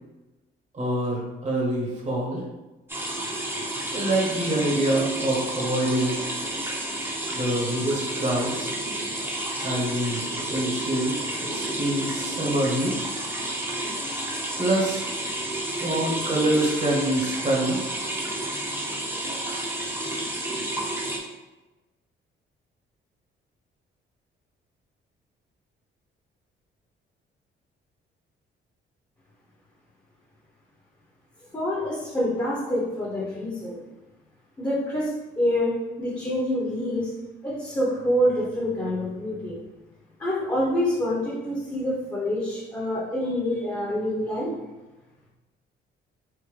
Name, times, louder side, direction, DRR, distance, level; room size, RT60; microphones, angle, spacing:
voice 1, 0.7-2.4 3.9-6.2 7.3-8.7 9.6-10.2 10.5-13.0 14.6-15.0 15.8-17.8, right 1 dB, 35° right, -3 dB, 1.1 m, -25 dB
sound 1, 2.9-21.2, right 1 dB, 10° right, 0.8 m, -31 dB
voice 2, 31.5-33.9 34.6-37.1 37.4-39.6 40.2-44.5, equal, 15° left, -7 dB, 0.9 m, -26 dB
3.5 x 2.1 x 3.3 m, 1.1 s
cardioid pair, 90°, 20 cm